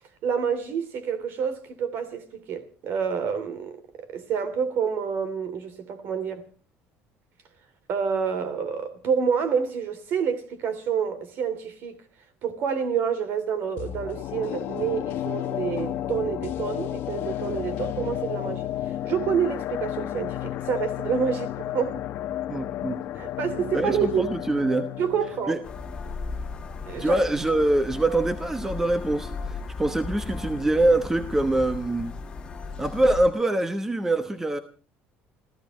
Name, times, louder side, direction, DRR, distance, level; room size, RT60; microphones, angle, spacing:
voice 1, 0.2-6.4 7.9-12.0 12.4-18.7 19.0-22.0 23.2-24.3 25.0-25.6 26.9-27.2, right 7 dB, 55° right, 3.1 m, -28 dB
sound 1, 13.8-26.9 27.2-27.3, left 12 dB, 55° left, 1.0 m, -32 dB
voice 2, 22.5-23.0 23.7-24.9 25.5-25.6 27.0-32.1 32.8-34.6, right 2 dB, 10° right, 1.1 m, -24 dB
sound 2, 25.6-33.3, left 4 dB, 20° left, 1.6 m, -36 dB
30.0 x 14.5 x 3.2 m
cardioid pair, 145°, 4 cm